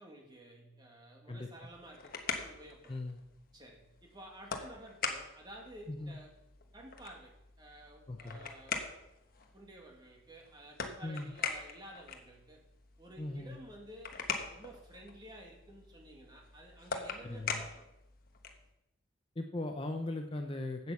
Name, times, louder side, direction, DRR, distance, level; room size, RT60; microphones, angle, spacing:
voice 1, 0.0-3.0 3.5-6.3 6.7-8.8 9.5-12.6 13.0-14.2 14.5-17.9, right 1 dB, 20° right, 0 dB, 2.0 m, -53 dB
sound 1, 1.6-18.7, left 5 dB, 45° left, 1.1 m, -43 dB
voice 2, 2.9-3.2 5.9-6.2 8.1-8.4 11.0-11.3 13.2-13.5 17.2-17.6 19.4-20.9, left 2 dB, 25° left, 5 dB, 0.6 m, -39 dB
8.5 x 8.5 x 6.9 m, 0.88 s
head